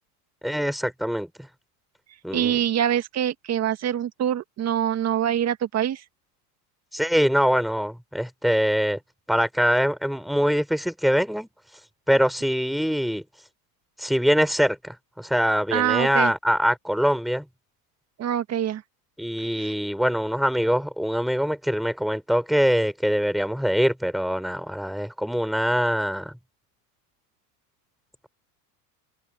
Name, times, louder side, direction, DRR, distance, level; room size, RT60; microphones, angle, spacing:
voice 1, 0.4-1.5 2.2-2.6 6.9-9.0 9.3-11.5 12.1-13.2 14.0-17.5 19.2-26.3, equal, ahead, 3.8 m, -23 dB
voice 2, 2.3-6.0 15.7-16.3 18.2-18.8 19.6-19.7, right 10 dB, 35° right, 2.0 m, -24 dB
supercardioid pair, 125°, 47 cm